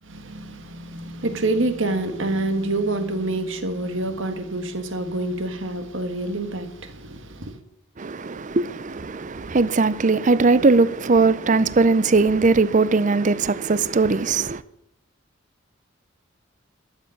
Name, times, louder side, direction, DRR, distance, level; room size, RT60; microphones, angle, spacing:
voice 1, 0.0-7.6, right 2 dB, 65° right, 1.6 m, -27 dB
voice 2, 8.0-14.6, right 3 dB, 35° right, 0.5 m, -19 dB
13.0 x 7.1 x 9.9 m
head